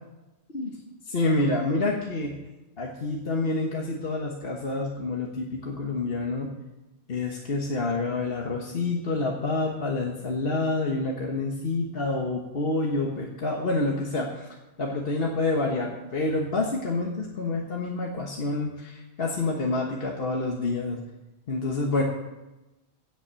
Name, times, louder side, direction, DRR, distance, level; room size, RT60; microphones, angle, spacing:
voice 1, 1.0-2.4 2.8-6.5 7.1-14.5 14.8-21.0 21.5-22.0, left 2 dB, 65° left, 0 dB, 1.5 m, -28 dB
16.5 x 6.0 x 7.5 m, 1.0 s
omnidirectional pair, 1.1 m